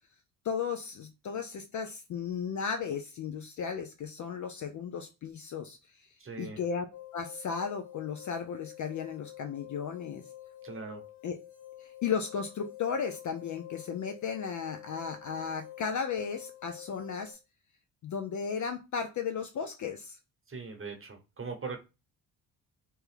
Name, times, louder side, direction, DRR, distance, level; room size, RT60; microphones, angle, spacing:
voice 1, 0.4-5.8 6.4-6.9 7.1-10.2 11.2-11.4 11.8-17.4 18.0-20.2, left 6 dB, 40° left, 0.5 m, -35 dB
voice 2, 6.2-6.6 10.6-11.0 20.5-21.8, right 4 dB, 25° right, 0.9 m, -40 dB
sound 1, 6.9-17.3, left 13 dB, 80° left, 1.1 m, -49 dB
2.9 x 2.2 x 3.3 m
hypercardioid pair, 45°, 48 cm